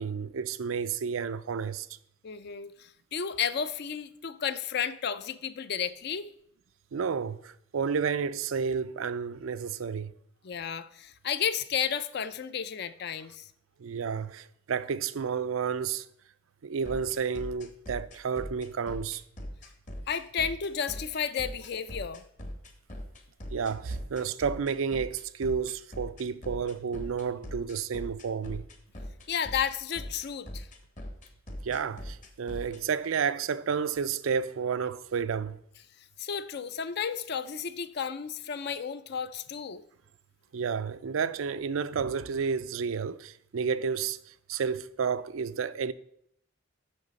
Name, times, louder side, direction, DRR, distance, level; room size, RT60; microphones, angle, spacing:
voice 1, 0.0-1.9 6.9-10.1 13.8-16.1 16.6-19.2 23.5-28.6 31.6-35.6 40.5-44.2 44.5-45.9, right 6 dB, 90° right, 0.4 m, -31 dB
voice 2, 2.2-6.3 10.4-13.5 20.1-22.2 29.3-30.7 36.2-39.8, left 7 dB, 55° left, 0.5 m, -32 dB
sound 1, 16.8-32.8, equal, 40° left, 1.1 m, -40 dB
6.7 x 6.3 x 5.1 m
head